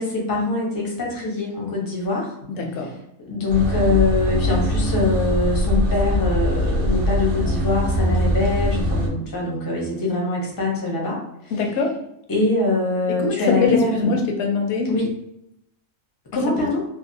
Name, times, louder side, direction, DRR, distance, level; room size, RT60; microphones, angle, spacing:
voice 1, 0.0-2.3 3.3-11.2 12.3-14.1 14.9-15.1 16.3-16.8, left 3 dB, 25° left, -3 dB, 0.5 m, -23 dB
voice 2, 2.5-2.9 11.5-12.0 13.1-14.9 16.6-16.7, left 4 dB, 65° left, 2 dB, 0.8 m, -22 dB
sound 1, 3.5-9.1, equal, 60° right, 0.5 m, -22 dB
2.6 x 2.1 x 2.6 m, 0.79 s
omnidirectional pair, 1.4 m